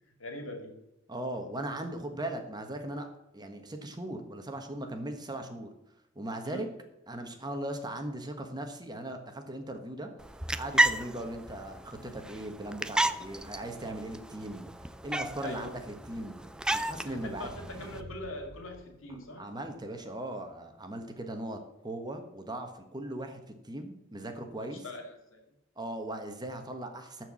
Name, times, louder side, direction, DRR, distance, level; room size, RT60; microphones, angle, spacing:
voice 1, 0.2-0.7 6.4-6.7 15.4-15.8 17.0-19.4 24.6-25.4, left 1 dB, 80° left, 4 dB, 2.5 m, -42 dB
voice 2, 1.1-3.1 3.3-5.7 6.1-6.7 7.1-10.1 10.6-14.7 15.0-16.4 16.7-17.5 19.4-24.8 25.8-27.2, right 1 dB, 20° right, 5 dB, 1.3 m, -38 dB
sound 1, 10.2-18.0, right 1 dB, 5° right, 0.4 m, -33 dB
sound 2, 16.6-19.8, right 1 dB, 50° right, 0.8 m, -51 dB
13.5 x 4.7 x 7.0 m, 0.91 s
head